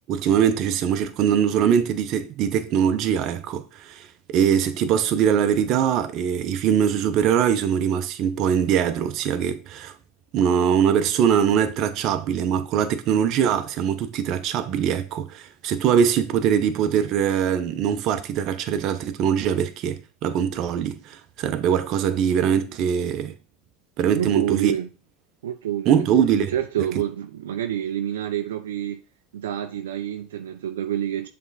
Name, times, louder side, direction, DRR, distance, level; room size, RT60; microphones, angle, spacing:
voice 1, 0.1-9.9 10.3-23.3 24.0-24.7 25.9-26.5, right 8 dB, 50° right, 0.8 m, -22 dB
voice 2, 24.1-24.9 25.4-26.1 26.5-29.0 29.3-31.3, right 11 dB, 85° right, 0.5 m, -27 dB
7.0 x 3.4 x 4.1 m
hypercardioid pair, 95°, 0 cm